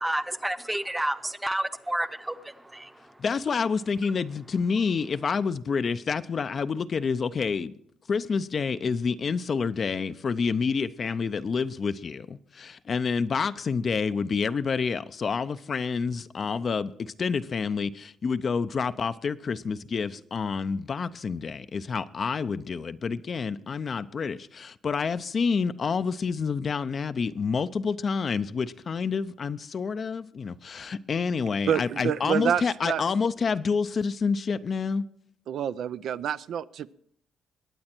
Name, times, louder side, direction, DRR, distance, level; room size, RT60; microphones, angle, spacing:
voice 1, 0.0-2.9, right 1 dB, 10° right, 0.8 m, -30 dB
voice 2, 3.2-7.7 8.1-35.0, left 5 dB, 45° left, 0.5 m, -28 dB
voice 3, 31.7-33.0 35.5-36.9, right 8 dB, 70° right, 0.4 m, -28 dB
21.0 x 8.6 x 4.4 m
cardioid pair, 90°, 0 cm